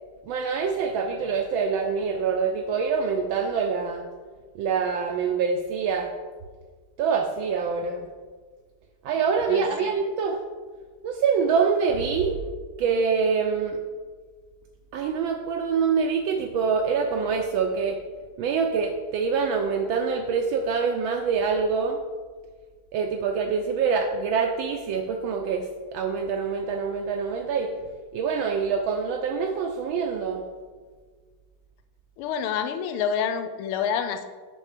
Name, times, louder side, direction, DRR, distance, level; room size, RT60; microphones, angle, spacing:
voice 1, 0.3-4.0 4.5-6.1 7.0-8.1 9.0-10.4 11.0-12.4 12.8-13.8 14.9-18.0 18.4-22.0 22.9-27.7 28.1-30.4, right 5 dB, 75° right, 3 dB, 1.3 m, -25 dB
voice 2, 9.5-9.9 32.2-34.3, left 7 dB, 80° left, 9 dB, 1.5 m, -28 dB
6.4 x 5.5 x 4.9 m, 1.5 s
omnidirectional pair, 2.4 m